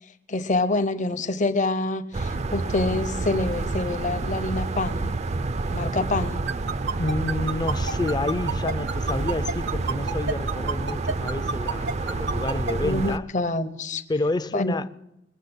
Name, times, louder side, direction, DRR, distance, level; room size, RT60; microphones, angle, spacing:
voice 1, 0.3-5.1 5.7-6.4 12.7-14.0 14.5-14.8, left 2 dB, 40° left, 0.9 m, -26 dB
sound 1, 2.1-13.2, right 3 dB, 35° right, 0.5 m, -29 dB
sound 2, 6.5-12.7, right 4 dB, 65° right, 0.8 m, -28 dB
voice 2, 7.0-13.3 14.1-14.9, left 2 dB, 20° left, 0.5 m, -29 dB
22.0 x 7.3 x 8.0 m
head